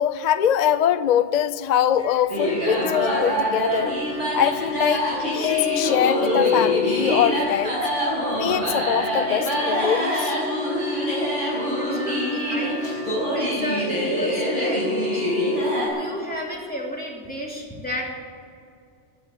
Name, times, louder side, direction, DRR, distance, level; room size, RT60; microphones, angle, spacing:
voice 1, 0.0-4.0 4.3-7.8 8.3-10.3, left 9 dB, 50° left, 12 dB, 0.5 m, -23 dB
sound 1, 2.0-3.3 5.4-7.1, left 11 dB, 80° left, 1.1 m, -26 dB
sound 2, 2.3-15.9, equal, 80° right, 5.6 m, -24 dB
voice 2, 11.8-15.3 15.8-18.1, left 1 dB, 5° left, -3 dB, 3.1 m, -32 dB
15.5 x 8.9 x 9.1 m, 2.3 s
omnidirectional pair, 1.2 m